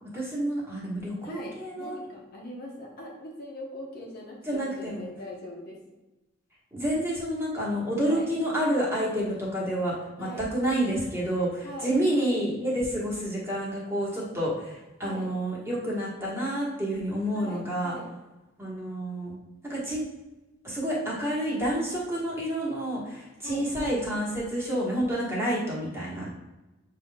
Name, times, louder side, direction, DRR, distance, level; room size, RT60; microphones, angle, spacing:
voice 1, 0.0-2.1 4.5-5.1 6.7-17.9 18.6-19.4 19.7-20.0 20.6-26.3, right 1 dB, 15° right, -6 dB, 1.3 m, -29 dB
voice 2, 1.2-5.8 8.0-8.3 10.2-10.5 11.6-12.4 15.0-15.3 17.3-18.1 23.4-24.0, left 1 dB, 50° left, -3 dB, 1.0 m, -41 dB
6.3 x 3.3 x 2.3 m, 1.1 s
head